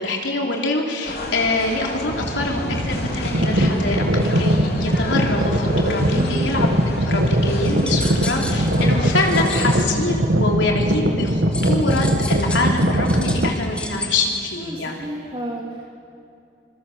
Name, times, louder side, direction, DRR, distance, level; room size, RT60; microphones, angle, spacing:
voice 1, 0.0-4.1 4.4-6.7 7.1-15.1, left 2 dB, 85° left, 1 dB, 3.6 m, -25 dB
sound 1, 1.0-9.9, left 1 dB, 55° left, 2.8 m, -32 dB
sound 2, 2.1-13.5, equal, 65° right, 2.0 m, -21 dB
voice 2, 6.1-6.5 14.6-16.0, equal, 25° right, -2 dB, 2.6 m, -32 dB
sound 3, 7.6-9.9 11.5-14.1, left 1 dB, 5° left, 2.2 m, -33 dB
25.5 x 22.5 x 6.9 m, 2.7 s
head